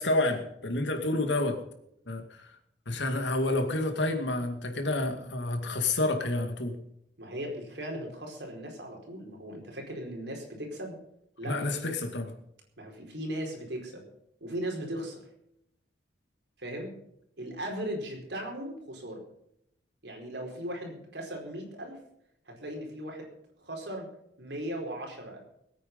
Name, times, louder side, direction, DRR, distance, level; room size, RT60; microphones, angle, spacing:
voice 1, 0.0-1.6 2.1-2.5 2.9-6.8 11.5-12.3, left 2 dB, 80° left, 6 dB, 2.3 m, -29 dB
voice 2, 7.2-11.0 11.4-11.6 12.8-14.1 14.4-15.2 16.6-16.9 17.4-19.2 20.0-22.0 22.5-23.3 23.6-24.1 24.4-25.4, right 1 dB, 65° right, 1 dB, 4.8 m, -37 dB
21.5 x 9.2 x 5.5 m, 0.76 s
head